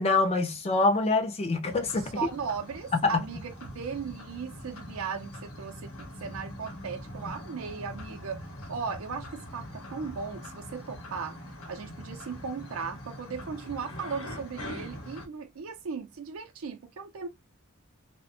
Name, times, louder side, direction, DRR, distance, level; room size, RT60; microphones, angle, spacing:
voice 1, 0.0-2.2 3.0-3.2, left 3 dB, 30° left, 0.4 m, -25 dB
sound 1, 1.6-15.3, left 1 dB, 75° left, 0.8 m, -43 dB
voice 2, 2.2-11.4 11.7-17.3, right 5 dB, 70° right, 0.4 m, -37 dB
2.4 x 2.1 x 2.7 m
head